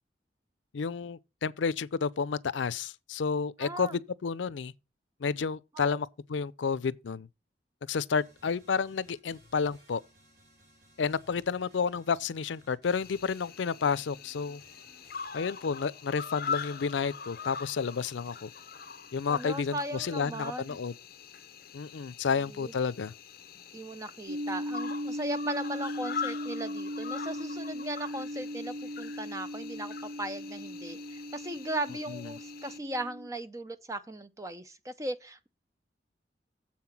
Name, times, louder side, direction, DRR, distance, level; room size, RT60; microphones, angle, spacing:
voice 1, 0.7-4.7 5.2-7.3 7.9-10.0 11.0-14.6 15.3-18.5 19.1-20.9 21.7-23.1 32.1-32.3, left 5 dB, 85° left, 0.5 m, -31 dB
voice 2, 3.6-4.0 5.7-6.0 19.3-20.8 22.5-22.7 23.7-35.5, right 1 dB, 15° right, 0.6 m, -38 dB
sound 1, 8.2-15.3, equal, 60° right, 3.1 m, -61 dB
Cricket, 12.9-32.8, left 6 dB, 50° left, 0.8 m, -43 dB
sound 2, 24.3-33.3, equal, 85° right, 0.5 m, -38 dB
7.5 x 5.8 x 5.8 m
head